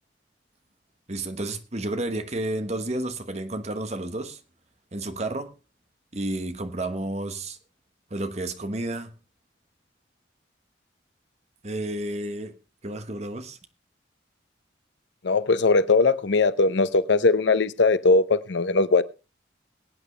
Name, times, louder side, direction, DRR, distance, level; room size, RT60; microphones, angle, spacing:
voice 1, 1.1-4.4 4.9-5.5 6.1-7.6 8.1-9.1 11.6-12.6 12.8-13.6, right 1 dB, 40° right, 1.2 m, -31 dB
voice 2, 15.2-19.0, left 3 dB, 85° left, 0.7 m, -20 dB
21.5 x 8.9 x 3.3 m
head